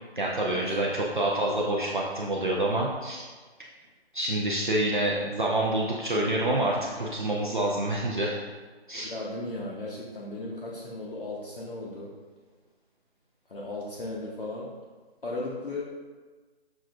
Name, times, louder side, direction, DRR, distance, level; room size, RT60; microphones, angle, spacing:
voice 1, 0.2-3.2 4.1-8.4 8.9-9.1, right 1 dB, 50° right, -3 dB, 0.4 m, -27 dB
voice 2, 9.0-12.1 13.5-14.7 15.2-15.8, left 2 dB, 55° left, -5 dB, 0.7 m, -36 dB
6.0 x 2.3 x 2.4 m, 1.4 s
figure-of-eight pair, 175°, 32 cm